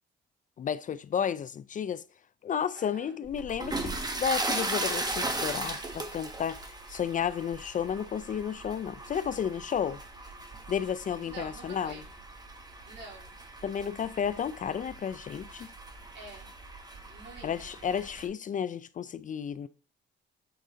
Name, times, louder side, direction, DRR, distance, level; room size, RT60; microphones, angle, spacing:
voice 1, 0.6-2.0 2.4-10.0 10.7-12.0 13.6-15.7 17.4-19.7, left 8 dB, 40° left, 0.4 m, -32 dB
voice 2, 2.7-3.2 11.2-12.1 12.8-13.3 16.1-16.5 17.0-17.8, right 3 dB, 65° right, 3.3 m, -47 dB
sound 1, 3.3-18.3, right 2 dB, 20° right, 1.2 m, -38 dB
7.6 x 3.6 x 3.9 m
cardioid pair, 90°, 20 cm